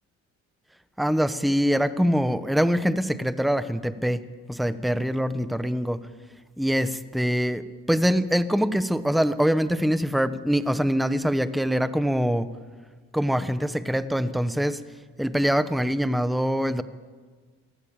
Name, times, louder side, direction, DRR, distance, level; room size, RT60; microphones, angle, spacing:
voice 1, 1.0-4.2 4.5-6.0 6.6-12.5 13.1-14.8 15.2-16.8, equal, ahead, 13 dB, 1.0 m, -24 dB
22.5 x 16.0 x 8.9 m, 1.5 s
cardioid pair, 90°, 30 cm